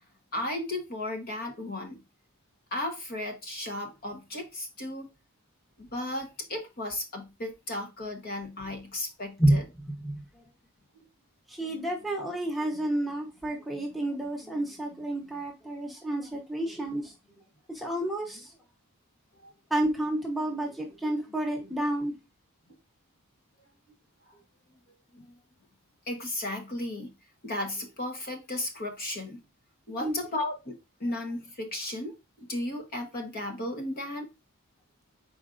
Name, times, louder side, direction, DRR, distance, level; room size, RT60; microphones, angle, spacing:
voice 1, 0.3-2.0 2.7-5.1 5.8-9.6 19.4-19.5 25.1-25.3 26.1-27.1 27.4-29.4 29.9-30.7 31.0-34.3, left 1 dB, 45° left, 1.0 m, -35 dB
voice 2, 11.5-17.1 17.7-18.5 19.7-22.1 30.0-30.1, right 1 dB, ahead, 0.9 m, -29 dB
4.6 x 4.3 x 2.5 m
head